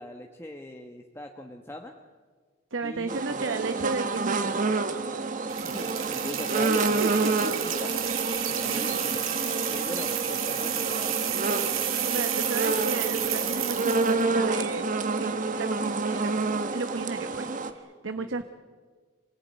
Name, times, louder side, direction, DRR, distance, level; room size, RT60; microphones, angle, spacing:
voice 1, 0.0-1.9 2.8-3.9 5.6-8.0 8.5-9.2 9.7-11.2 18.2-18.4, left 1 dB, 10° left, 2 dB, 1.2 m, -40 dB
voice 2, 2.7-4.8 7.0-7.3 8.7-9.1 12.1-16.3 16.7-18.4, right 3 dB, 65° right, 8 dB, 1.0 m, -34 dB
sound 1, 3.1-17.7, right 3 dB, 40° right, 1.4 m, -28 dB
sound 2, 5.5-14.2, right 10 dB, 90° right, 2.8 m, -31 dB
26.5 x 18.5 x 9.4 m, 1.5 s
head